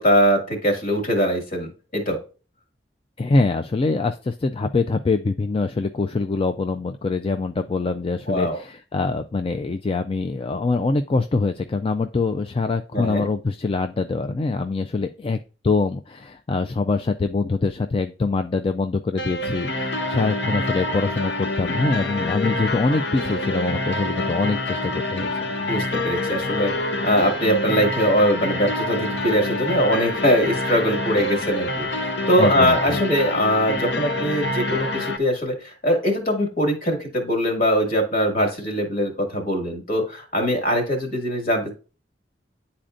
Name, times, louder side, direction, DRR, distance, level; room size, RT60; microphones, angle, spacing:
voice 1, 0.0-2.2 8.3-8.6 12.9-13.3 25.6-41.7, equal, 50° left, 2 dB, 2.1 m, -22 dB
voice 2, 3.2-15.4 15.6-25.3 32.4-33.0, left 3 dB, 30° left, 8 dB, 0.4 m, -24 dB
sound 1, 19.2-35.2, left 2 dB, 70° left, 0.9 m, -26 dB
10.0 x 4.3 x 2.5 m, 0.34 s
head